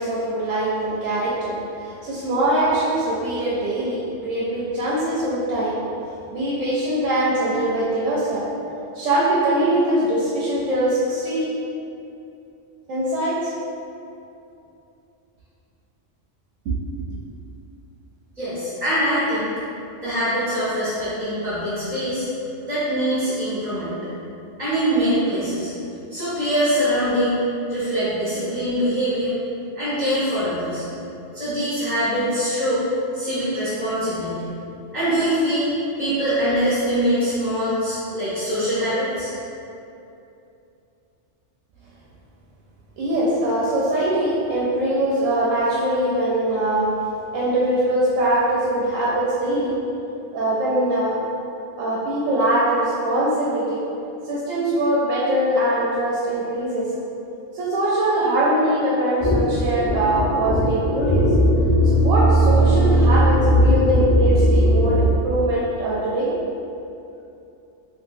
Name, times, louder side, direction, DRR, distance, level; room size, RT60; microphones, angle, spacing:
voice 1, 0.0-5.8 6.3-8.4 8.9-11.5 12.9-13.5 16.7-16.8 17.1-17.2 43.0-46.9 47.3-49.7 50.3-51.2 51.8-53.8 54.2-56.9 57.5-61.2 61.8-66.3, right 1 dB, 85° right, -7 dB, 0.9 m, -22 dB
voice 2, 18.4-19.5 20.0-22.3 22.7-23.9 24.6-25.7 26.1-27.4 27.7-29.4 29.7-30.8 31.3-32.8 33.1-34.5 34.9-35.7 36.0-39.3, equal, 35° right, -13 dB, 1.1 m, -23 dB
sound 1, 59.2-65.1, equal, 20° left, 1.3 m, -17 dB
2.9 x 2.7 x 2.6 m, 2.7 s
omnidirectional pair, 1.3 m